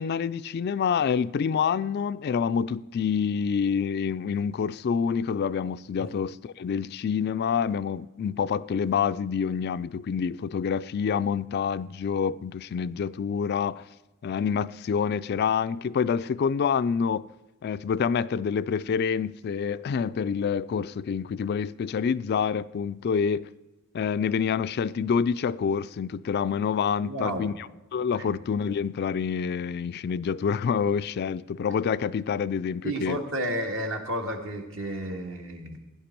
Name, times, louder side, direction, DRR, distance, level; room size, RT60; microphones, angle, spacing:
voice 1, 0.0-13.9 14.2-17.3 17.6-23.5 23.9-27.5 27.9-33.2, left 6 dB, 45° left, 0.3 m, -27 dB
voice 2, 27.0-27.5 28.1-28.3 32.8-35.8, right 1 dB, 60° right, 1.9 m, -32 dB
16.5 x 10.5 x 4.5 m
head